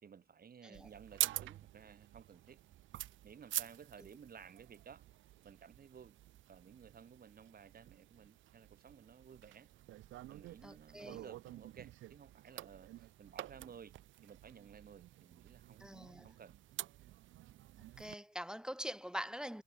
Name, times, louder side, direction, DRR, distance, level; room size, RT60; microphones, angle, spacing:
voice 1, 0.0-2.6 3.2-5.0 5.4-6.2 6.5-9.7 10.3-14.0 14.2-15.9 16.2-16.6, right 7 dB, 50° right, 6.1 m, -56 dB
sound 1, 0.7-18.1, right 15 dB, 80° right, 0.8 m, -47 dB
voice 2, 10.6-11.1 15.8-16.3 18.0-19.6, equal, 5° right, 1.6 m, -44 dB
cardioid pair, 90°, 20 cm